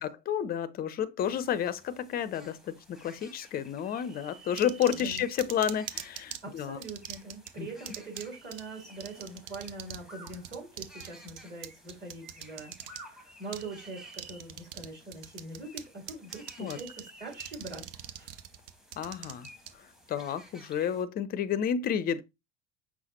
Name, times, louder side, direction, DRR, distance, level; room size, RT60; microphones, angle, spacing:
voice 1, 0.0-6.8 7.6-7.7 16.6-16.8 19.0-19.5 19.8-22.2, left 9 dB, 30° left, 0.5 m, -31 dB
sound 1, 1.2-21.0, right 1 dB, ahead, 1.0 m, -54 dB
sound 2, 4.6-6.4 6.8-7.5 7.9-8.2 8.5-8.6 9.0-10.0 10.3-13.0 13.5-13.6 14.1-14.9 15.1-15.8 16.1-17.0 17.3-19.7, right 11 dB, 60° right, 0.6 m, -40 dB
voice 2, 4.9-5.2 6.4-18.4, right 3 dB, 35° right, 2.9 m, -43 dB
5.6 x 2.1 x 4.2 m
figure-of-eight pair, 65°, 32 cm